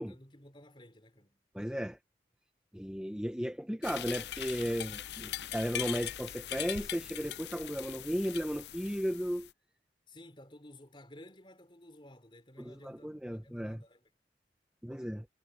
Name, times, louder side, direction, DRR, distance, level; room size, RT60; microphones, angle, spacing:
voice 1, 0.0-1.4 10.1-14.0, left 1 dB, 30° left, 4.5 m, -54 dB
voice 2, 1.5-2.0 2.7-9.5 12.6-13.8 14.8-15.3, equal, 5° right, 1.3 m, -35 dB
sound 1, 3.8-9.5, left 11 dB, 70° left, 0.5 m, -41 dB
head